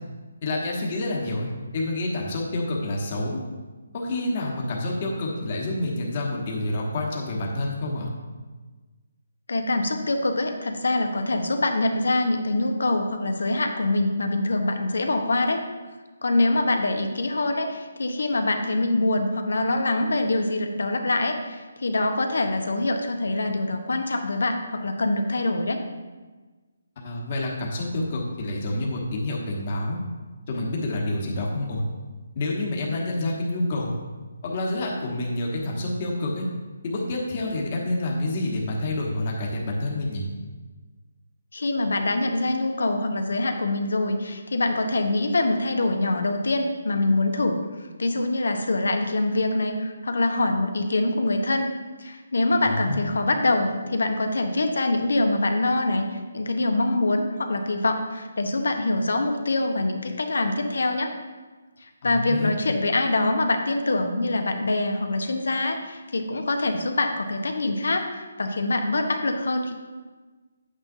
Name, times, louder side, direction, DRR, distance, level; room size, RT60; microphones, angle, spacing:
voice 1, 0.4-3.4 3.9-8.1 27.0-30.0 30.5-31.8 32.3-33.9 34.4-36.5 36.8-40.3 52.6-53.1 62.0-62.5, left 2 dB, 30° left, -2 dB, 1.3 m, -28 dB
voice 2, 9.5-15.6 16.2-25.8 41.5-47.6 48.0-51.7 52.0-61.1 61.8-69.7, left 2 dB, 90° left, 5 dB, 1.1 m, -24 dB
9.2 x 8.7 x 2.7 m, 1.3 s
hypercardioid pair, 175°, 0 cm